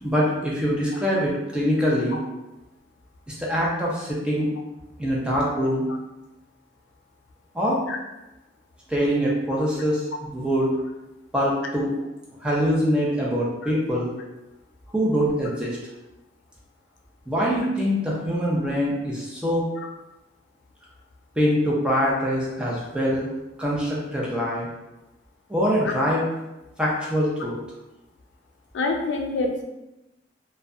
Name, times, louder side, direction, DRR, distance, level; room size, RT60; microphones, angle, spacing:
voice 1, 0.0-2.2 3.3-4.5 5.0-5.9 7.5-7.8 8.9-10.7 11.3-11.9 12.4-14.1 14.9-15.8 17.3-19.6 21.4-23.3 23.6-24.7 25.5-26.3 26.8-27.6, equal, 5° right, -5 dB, 0.4 m, -24 dB
voice 2, 28.7-29.6, left 3 dB, 90° left, 2 dB, 0.4 m, -26 dB
2.5 x 2.1 x 2.3 m, 0.97 s
head